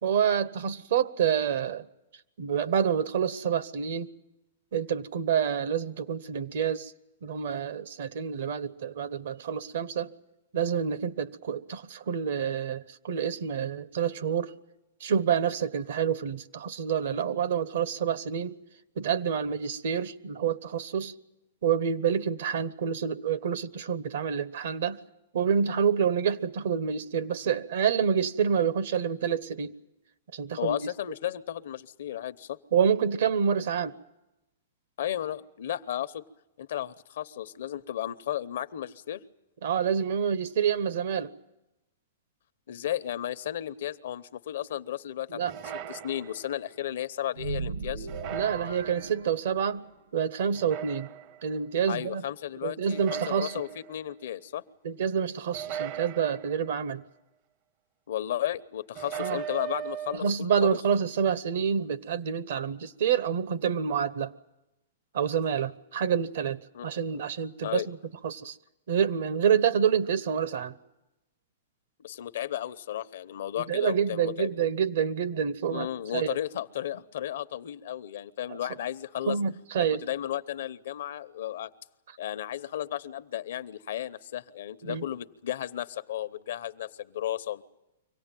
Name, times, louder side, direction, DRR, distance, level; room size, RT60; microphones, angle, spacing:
voice 1, 0.0-1.9 2.4-4.1 4.7-6.9 7.2-10.1 10.5-14.5 15.0-18.6 19.0-21.1 21.6-25.0 25.3-29.7 30.3-30.8 32.7-33.9 39.6-41.3 45.3-45.5 48.3-49.8 50.1-51.1 51.4-52.2 52.6-53.5 54.8-57.0 59.1-59.4 60.1-64.3 65.1-68.0 68.2-68.6 68.9-70.7 73.6-75.9 76.1-76.3 79.3-80.0 84.8-85.0, right 7 dB, 70° right, 1.0 m, -28 dB
voice 2, 30.6-32.6 35.0-36.2 36.6-39.2 42.7-45.4 45.9-48.1 51.9-54.6 58.1-60.8 66.7-66.8 67.1-67.2 67.6-67.9 72.0-74.5 75.7-79.4 79.8-81.7 82.2-87.6, left 11 dB, 70° left, 0.9 m, -34 dB
sound 1, 45.5-46.7 48.1-49.2 50.5-51.5 52.9-54.1 55.5-56.9 59.0-60.2, right 10 dB, 45° right, 0.7 m, -38 dB
sound 2, 47.3-49.9, right 5 dB, 85° right, 1.7 m, -37 dB
24.5 x 17.5 x 9.1 m
hypercardioid pair, 135°, 0 cm